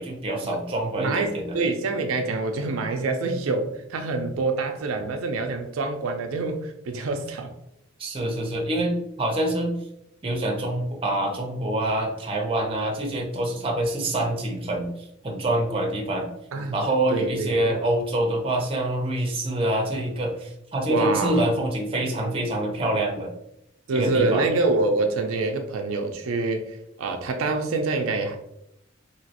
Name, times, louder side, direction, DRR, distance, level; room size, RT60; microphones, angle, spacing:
voice 1, 0.0-1.6 8.0-9.7 10.2-14.9 15.2-16.3 16.7-23.3 23.9-24.4, right 1 dB, 25° right, 1 dB, 0.6 m, -26 dB
voice 2, 1.0-7.5 16.5-16.8 17.1-17.7 20.9-21.5 23.9-28.4, right 3 dB, 85° right, 5 dB, 0.4 m, -26 dB
3.0 x 2.8 x 2.8 m, 0.81 s
head